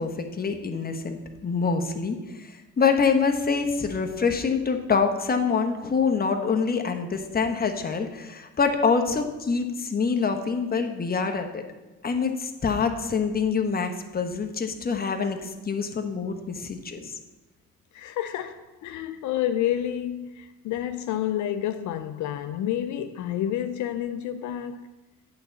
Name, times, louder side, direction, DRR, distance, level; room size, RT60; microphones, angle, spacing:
voice 1, 0.0-11.6 12.0-17.2, left 5 dB, 30° left, 1.1 m, -26 dB
voice 2, 17.9-24.9, left 11 dB, 75° left, 0.5 m, -29 dB
8.9 x 3.9 x 7.0 m
cardioid pair, 90°, 30 cm